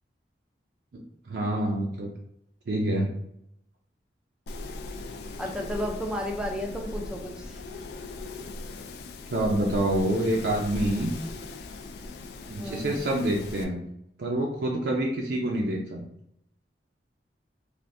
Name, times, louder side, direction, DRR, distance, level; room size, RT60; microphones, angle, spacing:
voice 1, 1.3-2.1 2.7-3.1 9.3-11.1 12.5-13.8 14.2-16.0, right 1 dB, 65° right, -1 dB, 0.4 m, -27 dB
Wind, 4.5-13.6, left 2 dB, 60° left, 0.3 m, -39 dB
voice 2, 5.4-7.6 12.6-13.0, equal, 5° right, 1 dB, 0.4 m, -33 dB
3.3 x 2.5 x 2.5 m, 0.76 s
head